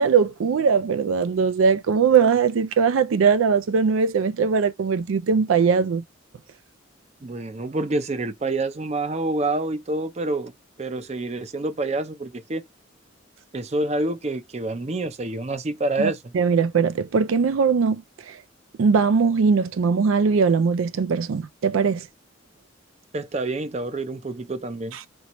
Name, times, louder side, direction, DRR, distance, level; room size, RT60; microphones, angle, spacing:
voice 1, 0.0-6.0 16.0-18.4 18.8-22.1, right 5 dB, 90° right, 0.4 m, -20 dB
voice 2, 7.2-10.5 10.8-12.6 13.5-16.2 23.1-25.0, right 2 dB, 35° right, 0.5 m, -27 dB
4.6 x 2.7 x 3.0 m
head